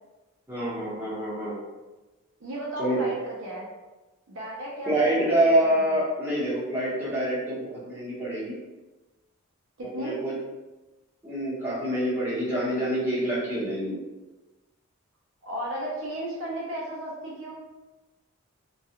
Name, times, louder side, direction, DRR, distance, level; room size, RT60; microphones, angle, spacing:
voice 1, 0.5-1.6 2.8-3.0 4.9-8.6 9.8-10.4 11.2-14.0, right 1 dB, 10° right, -11 dB, 1.0 m, -26 dB
voice 2, 2.4-3.7 4.3-6.0 9.8-10.2 15.4-17.5, right 1 dB, 60° right, -4 dB, 0.5 m, -35 dB
2.3 x 2.3 x 2.8 m, 1.1 s
head